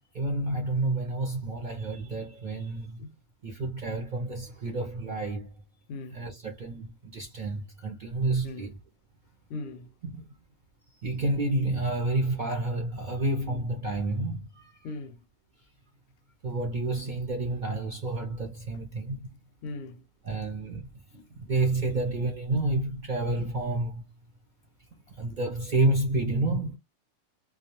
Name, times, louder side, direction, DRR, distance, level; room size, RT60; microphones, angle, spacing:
voice 1, 0.1-3.0 3.4-5.5 6.1-8.8 10.0-10.3 11.0-14.7 16.4-19.4 20.2-20.9 21.4-24.0 25.2-26.8, right 2 dB, 55° right, 0.5 m, -29 dB
voice 2, 5.9-6.2 8.4-8.7 9.5-9.9 14.8-15.2 19.6-20.0 21.1-21.3, left 3 dB, 65° left, 0.7 m, -39 dB
2.2 x 2.2 x 2.8 m
omnidirectional pair, 1.4 m